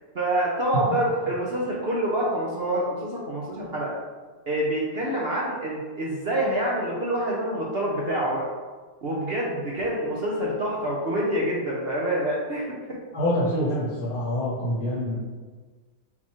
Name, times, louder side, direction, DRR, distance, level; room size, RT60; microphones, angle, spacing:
voice 1, 0.1-3.9 4.5-8.4 9.0-12.6, right 1 dB, 55° right, -5 dB, 0.7 m, -26 dB
voice 2, 13.1-15.2, equal, 65° left, -6 dB, 1.2 m, -26 dB
4.1 x 2.9 x 4.2 m, 1.4 s
omnidirectional pair, 1.8 m